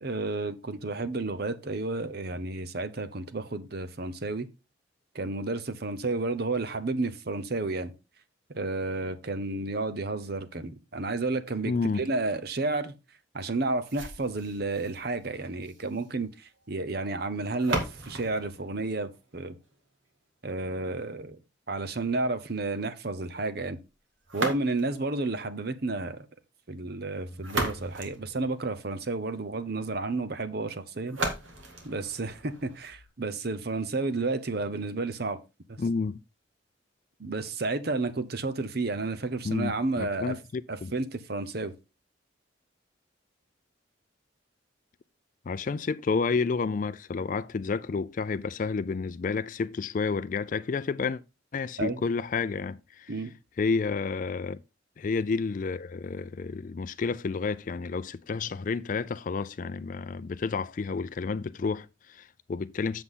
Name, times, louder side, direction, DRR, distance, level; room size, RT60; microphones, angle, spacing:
voice 1, 0.0-4.5 5.1-7.9 8.5-12.9 13.3-19.5 20.4-21.4 21.7-23.8 24.3-26.3 26.7-31.2 31.8-35.4 35.7-35.8 37.2-40.4 40.7-41.7 51.8-52.0 53.1-53.3, right 3 dB, 55° right, 0.9 m, -31 dB
voice 2, 11.7-12.1 35.8-36.2 39.4-40.9 45.5-51.2 51.5-53.1 53.6-54.6 55.0-63.0, left 4 dB, 40° left, 0.3 m, -30 dB
sound 1, 13.9-19.9 24.2-25.1 27.1-29.1 31.1-33.1, right 2 dB, 85° right, 2.2 m, -37 dB
8.0 x 7.0 x 3.7 m
head